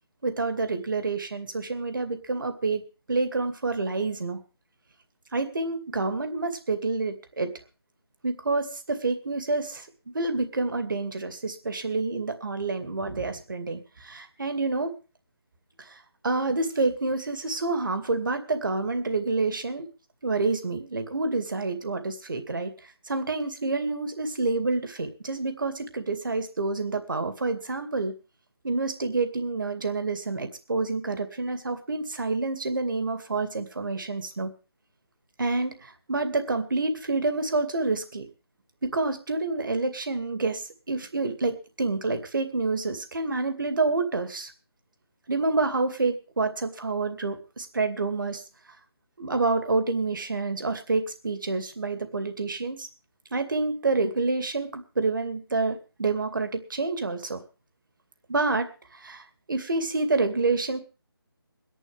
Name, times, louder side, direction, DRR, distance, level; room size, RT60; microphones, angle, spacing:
voice 1, 0.2-2.8 3.1-4.4 5.3-7.5 8.2-9.9 10.1-14.9 15.8-19.9 20.2-22.7 23.1-28.1 28.6-34.5 35.4-38.3 38.8-44.5 45.3-48.4 49.2-52.9 53.3-57.4 58.3-60.8, right 3 dB, 55° right, 8 dB, 2.3 m, -28 dB
22.5 x 11.0 x 3.5 m, 0.33 s
figure-of-eight pair, 170°, 13 cm